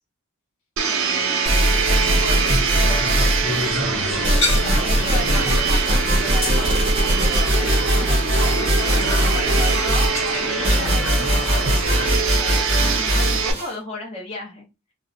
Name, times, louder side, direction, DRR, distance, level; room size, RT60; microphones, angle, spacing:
voice 1, 0.8-2.5 4.6-12.7 12.9-14.7, left 2 dB, 25° left, -3 dB, 0.8 m, -35 dB
Domestic sounds home sounds, 0.8-13.5, right 6 dB, 65° right, 0.5 m, -24 dB
sound 1, 1.4-3.7 4.2-13.7, equal, 25° right, 0.7 m, -21 dB
voice 2, 1.6-2.4 2.7-4.2 9.1-10.0, equal, 75° left, 2 dB, 0.6 m, -41 dB
sound 2, 1.7-12.1, left 1 dB, 55° left, 1.3 m, -29 dB
2.4 x 2.0 x 2.6 m, 0.26 s
head